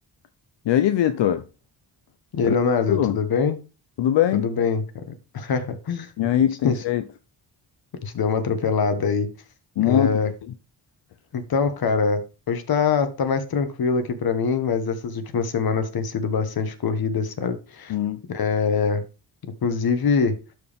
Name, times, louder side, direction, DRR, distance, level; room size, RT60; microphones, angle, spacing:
voice 1, 0.7-1.4 2.4-2.6 2.9-3.2 4.0-4.4 6.2-7.0 9.8-10.2 17.9-18.2, left 11 dB, 85° left, 0.7 m, -21 dB
voice 2, 2.3-3.6 4.3-5.0 5.3-6.1 6.6-6.7 8.0-9.3 9.9-10.3 11.3-12.2 12.5-17.9 18.3-19.0 19.6-20.4, left 5 dB, 55° left, 1.4 m, -23 dB
12.0 x 4.7 x 3.6 m
wide cardioid pair, 135°, 42 cm